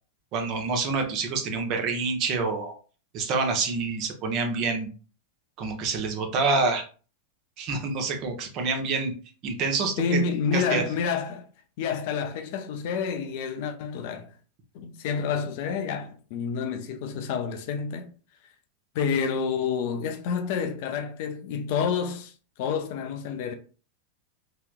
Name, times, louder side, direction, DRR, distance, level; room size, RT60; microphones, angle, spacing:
voice 1, 0.3-2.7 3.1-4.9 5.6-6.8 7.6-9.1 9.4-10.2 10.5-10.8, right 4 dB, 40° right, 0.8 m, -27 dB
voice 2, 10.0-11.5 11.8-14.3 14.7-18.1 18.9-22.3 22.6-23.5, left 6 dB, 50° left, 0.5 m, -29 dB
3.2 x 2.9 x 2.3 m
figure-of-eight pair, 90°, 0 cm